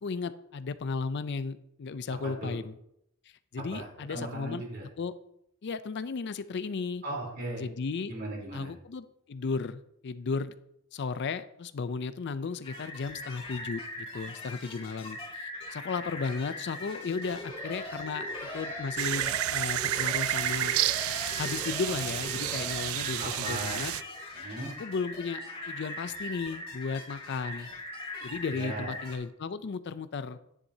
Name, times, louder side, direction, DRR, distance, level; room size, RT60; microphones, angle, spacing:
voice 1, 0.0-2.8 3.5-4.6 5.0-5.1 5.6-7.0 7.6-8.1 8.5-10.5 10.9-20.8 21.4-23.9 24.8-27.7 28.2-30.4, left 4 dB, 55° left, 13 dB, 0.4 m, -35 dB
voice 2, 2.2-2.6 3.6-4.9 7.0-7.6 8.1-8.7 23.2-23.9 24.3-24.7 28.5-28.9, right 2 dB, 50° right, -2 dB, 3.6 m, -37 dB
sound 1, 12.6-29.1, left 2 dB, 25° left, 2.2 m, -41 dB
Alarm, 17.2-22.8, equal, 15° right, 2.0 m, -42 dB
sound 2, 19.0-24.0, right 14 dB, 75° right, 0.3 m, -30 dB
11.0 x 10.0 x 2.8 m, 0.76 s
head